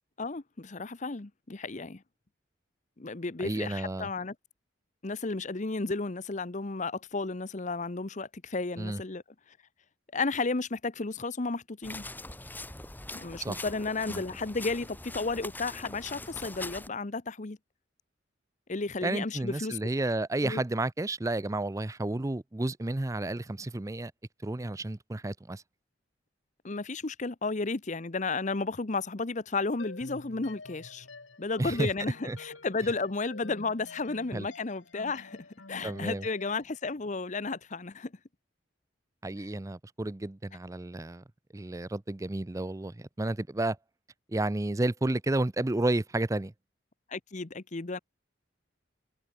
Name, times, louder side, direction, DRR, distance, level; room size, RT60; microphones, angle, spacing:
voice 1, 0.2-2.0 3.0-4.3 5.0-9.2 10.1-12.0 13.1-17.6 18.7-19.8 20.4-20.6 26.6-31.1 31.4-38.1 47.1-48.0, left 3 dB, 40° left, 0.9 m, -33 dB
voice 2, 3.4-4.1 8.8-9.0 13.4-13.6 14.1-14.2 19.0-24.1 24.4-25.6 31.6-31.9 32.2-32.4 34.3-34.5 35.8-36.3 39.2-41.2 41.5-43.8 44.3-46.5, right 2 dB, 15° right, 0.5 m, -31 dB
sound 1, 11.8-16.9, left 2 dB, 10° left, 1.9 m, -42 dB
sound 2, 29.8-36.6, left 3 dB, 85° left, 2.7 m, -49 dB
head